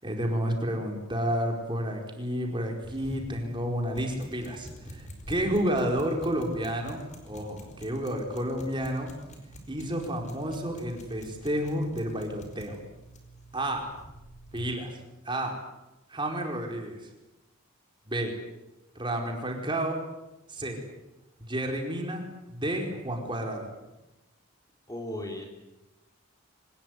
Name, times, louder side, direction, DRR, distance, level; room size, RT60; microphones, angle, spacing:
voice 1, 0.0-9.1 9.7-12.8 13.5-13.9 14.5-15.0 15.2-15.5 16.1-17.1 18.1-18.3 18.9-20.0 20.5-20.8 21.5-23.7, right 1 dB, 20° right, 2 dB, 4.7 m, -31 dB
sound 1, 2.8-14.7, right 1 dB, 35° left, 5.1 m, -47 dB
voice 2, 24.9-25.5, left 1 dB, 15° left, 2 dB, 3.5 m, -35 dB
25.0 x 20.0 x 9.7 m, 0.98 s
head